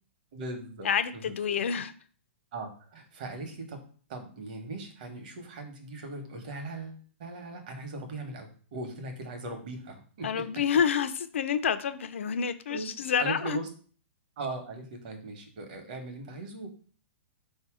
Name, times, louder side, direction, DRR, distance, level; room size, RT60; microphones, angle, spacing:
voice 1, 0.3-1.4 2.5-3.8 4.1-10.4 12.7-12.9 13.2-13.7 14.4-16.7, right 2 dB, 40° right, 0.9 m, -39 dB
voice 2, 0.8-1.9 10.2-13.6, left 7 dB, 70° left, 0.5 m, -28 dB
4.1 x 2.7 x 4.7 m
hypercardioid pair, 180°, 7 cm